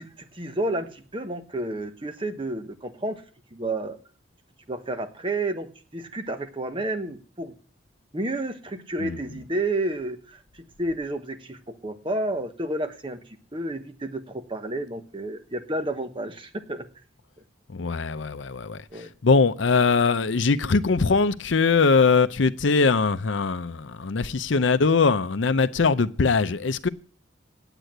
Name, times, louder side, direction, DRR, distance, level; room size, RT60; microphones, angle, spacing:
voice 1, 0.0-3.2 3.5-4.0 4.7-7.5 8.1-16.9 18.9-19.1, right 1 dB, 25° right, 1.2 m, -31 dB
voice 2, 17.7-18.8 19.2-26.9, left 4 dB, 80° left, 0.6 m, -21 dB
9.1 x 8.2 x 9.0 m
head